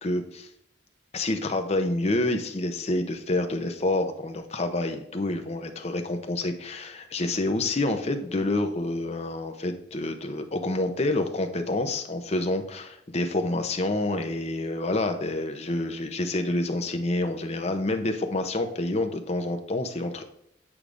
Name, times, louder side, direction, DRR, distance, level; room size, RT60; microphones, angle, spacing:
voice 1, 0.0-0.5 1.1-20.2, left 2 dB, 35° left, 6 dB, 0.7 m, -28 dB
8.7 x 4.8 x 2.5 m, 0.75 s
head